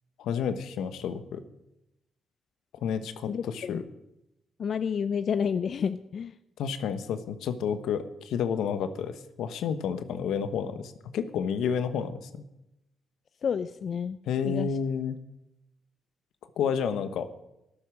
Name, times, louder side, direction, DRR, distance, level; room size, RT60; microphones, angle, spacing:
voice 1, 0.2-1.4 2.8-3.8 6.6-12.5 14.3-15.2 16.6-17.3, left 7 dB, 80° left, 10 dB, 1.2 m, -30 dB
voice 2, 3.3-3.8 4.6-6.3 13.4-14.2 14.4-14.7, left 7 dB, 55° left, 12 dB, 0.5 m, -30 dB
13.5 x 11.5 x 6.4 m, 0.88 s
cardioid pair, 90°, 0 cm